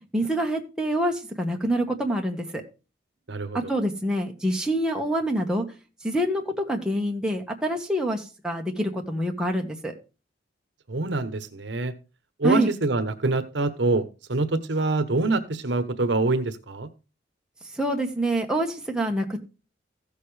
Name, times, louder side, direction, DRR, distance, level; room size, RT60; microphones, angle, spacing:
voice 1, 0.1-2.6 3.5-5.6 6.0-9.9 12.4-12.7 17.7-19.4, right 1 dB, 5° right, 0 dB, 1.5 m, -26 dB
voice 2, 3.3-3.6 10.9-11.9 12.4-14.0 14.3-16.9, right 3 dB, 70° right, 10 dB, 1.0 m, -25 dB
15.0 x 6.7 x 3.3 m, 0.31 s
head